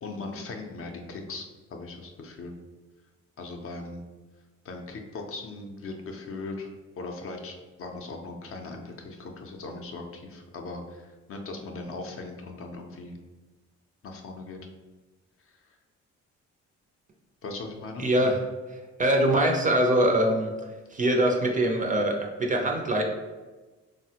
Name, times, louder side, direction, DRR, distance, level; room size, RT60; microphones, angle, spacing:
voice 1, 0.0-2.5 3.4-4.1 4.6-6.7 7.0-13.2 14.0-14.6 17.4-18.1, left 3 dB, 50° left, 3 dB, 0.5 m, -39 dB
voice 2, 18.0-18.4 19.0-20.5 20.9-23.0, right 1 dB, 25° right, 2 dB, 0.4 m, -23 dB
3.3 x 2.1 x 2.8 m, 1.2 s
cardioid pair, 90°, 30 cm